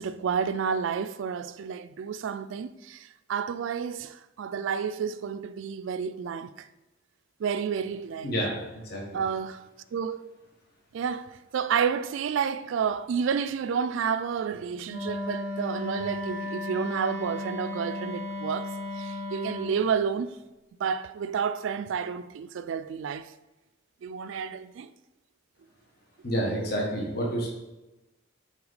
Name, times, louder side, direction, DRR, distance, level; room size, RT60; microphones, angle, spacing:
voice 1, 0.0-6.7 7.4-8.3 9.1-9.6 9.9-10.2 10.9-20.4 20.8-23.3 24.0-24.9, right 6 dB, 70° right, 0.3 m, -30 dB
voice 2, 8.2-9.2 26.2-27.5, equal, 50° left, 1.2 m, -29 dB
Wind instrument woodwind instrument, 14.9-19.8, left 2 dB, 85° left, 2.0 m, -34 dB
5.8 x 4.1 x 4.0 m
head